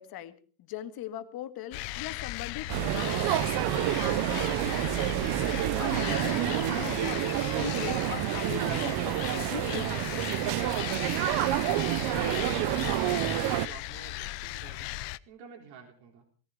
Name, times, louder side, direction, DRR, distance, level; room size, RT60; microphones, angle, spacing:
voice 1, 0.0-10.3, left 12 dB, 45° left, 10 dB, 2.0 m, -41 dB
sound 1, 1.7-15.2, left 19 dB, 70° left, 0.9 m, -37 dB
sound 2, 2.7-13.7, right 15 dB, 50° right, 0.8 m, -28 dB
voice 2, 11.4-14.9 15.3-16.2, right 6 dB, 75° right, 3 dB, 4.1 m, -49 dB
17.5 x 14.5 x 5.1 m, 0.40 s
supercardioid pair, 120°, 50 cm